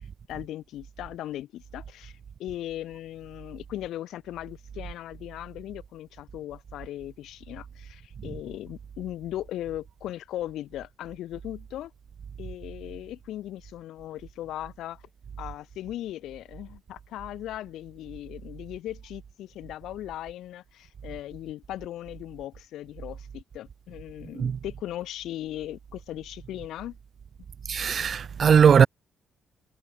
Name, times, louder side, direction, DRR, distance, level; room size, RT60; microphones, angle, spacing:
voice 1, 0.3-11.9 12.4-15.0 15.4-27.0, left 13 dB, 85° left, 6.9 m, -38 dB
voice 2, 27.7-28.9, right 7 dB, 45° right, 0.7 m, -19 dB
cardioid pair, 125°, 0 cm